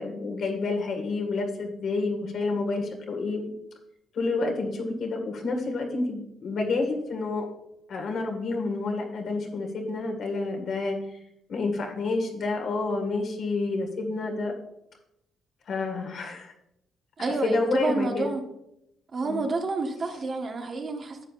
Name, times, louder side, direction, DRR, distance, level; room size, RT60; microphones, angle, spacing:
voice 1, 0.0-3.5 4.1-7.4 7.9-11.2 11.5-14.5 15.7-16.5 17.2-18.3 19.2-19.4, left 3 dB, 60° left, 3 dB, 1.8 m, -29 dB
voice 2, 17.2-18.4 19.1-21.3, right 3 dB, 45° right, 3 dB, 1.3 m, -29 dB
11.0 x 7.4 x 2.5 m, 0.82 s
cardioid pair, 90°, 0 cm